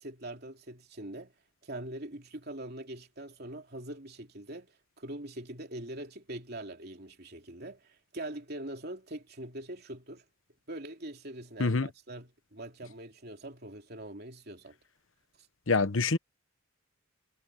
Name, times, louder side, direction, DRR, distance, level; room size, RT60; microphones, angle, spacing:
voice 1, 0.0-1.3 1.6-10.2 10.7-14.8, right 1 dB, 50° right, 3.1 m, -43 dB
voice 2, 15.7-16.2, left 4 dB, 75° left, 1.0 m, -25 dB
head